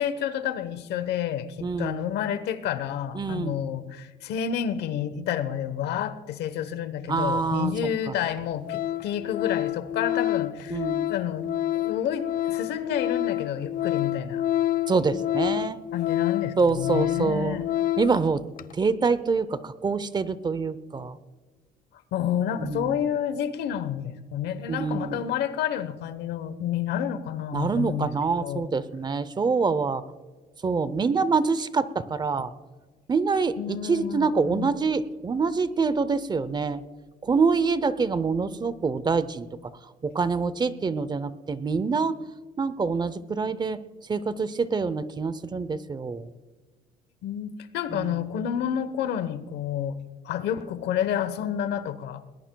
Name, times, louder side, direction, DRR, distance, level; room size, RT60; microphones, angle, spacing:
voice 1, 0.0-14.4 15.9-17.7 22.1-28.1 28.4-28.7 33.6-34.7 47.2-50.0 50.2-52.2, left 9 dB, 80° left, 1.0 m, -29 dB
voice 2, 1.6-2.0 3.1-3.6 7.1-7.7 10.7-11.1 14.9-15.8 16.6-17.6 18.0-18.4 18.7-21.2 22.6-22.9 24.7-25.2 27.5-30.0 30.6-32.5 33.1-36.8 37.2-39.5 40.0-42.2 42.6-43.8 44.1-46.3 47.9-48.1, right 4 dB, 25° right, 0.7 m, -26 dB
Organ, 7.6-7.7 8.2-8.4 8.7-18.2 18.6-18.7, left 13 dB, 55° left, 0.5 m, -28 dB
20.5 x 19.5 x 2.3 m
cardioid pair, 110°, 17 cm